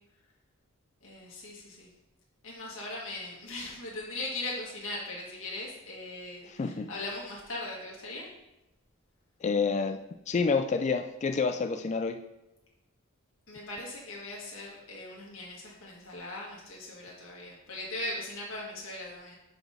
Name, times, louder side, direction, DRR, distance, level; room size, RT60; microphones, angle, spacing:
voice 1, 1.0-1.9 2.4-8.3 13.5-19.4, left 2 dB, 65° left, -4 dB, 1.6 m, -39 dB
voice 2, 6.5-6.9 9.4-10.0 10.3-12.2, left 4 dB, 35° left, 8 dB, 0.3 m, -28 dB
6.3 x 5.0 x 4.9 m, 0.95 s
head